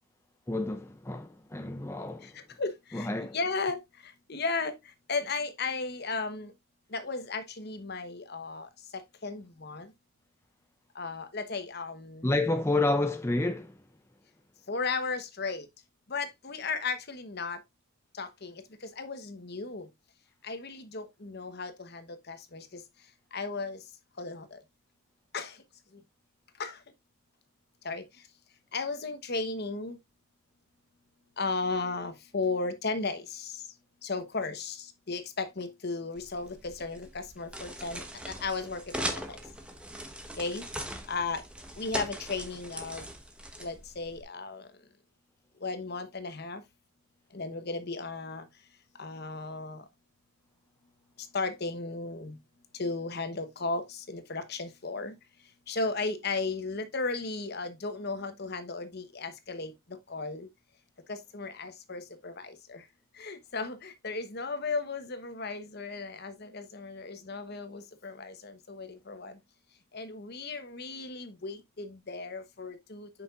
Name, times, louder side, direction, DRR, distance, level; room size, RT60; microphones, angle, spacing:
voice 1, 0.5-2.3 2.9-3.4 12.2-13.8, left 2 dB, 10° left, 0.5 m, -29 dB
voice 2, 2.6-3.8 4.3-4.7 5.1-6.5 6.9-8.7 9.2-9.9 11.0-12.3 14.7-15.7 16.1-17.6 18.2-18.5 19.0-19.9 20.4-22.7 23.3-23.8 24.2-24.6 25.3-25.5 26.6-26.8 27.8-28.0 28.7-30.0 31.4-33.6 34.0-38.8 39.1-39.4 40.4-40.6 41.1-41.4 41.8-43.1 43.6-44.7 45.6-46.6 47.3-48.4 49.0-49.8 51.3-52.4 52.8-55.1 55.7-59.7 60.1-60.5 61.1-62.8 63.2-69.3 69.9-73.1, left 3 dB, 50° left, 1.1 m, -35 dB
sound 1, 36.2-44.2, right 1 dB, 5° right, 1.1 m, -40 dB
8.1 x 5.9 x 2.5 m
head